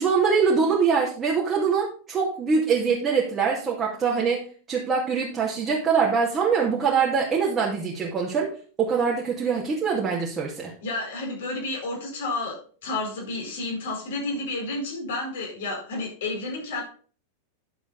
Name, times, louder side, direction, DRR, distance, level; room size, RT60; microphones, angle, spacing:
voice 1, 0.0-4.4 4.7-8.5 8.8-10.7, right 5 dB, 20° right, -4 dB, 2.4 m, -23 dB
voice 2, 10.8-16.8, left 2 dB, 60° left, -1 dB, 4.6 m, -31 dB
10.5 x 7.5 x 4.1 m, 0.42 s
figure-of-eight pair, 90°, 0 cm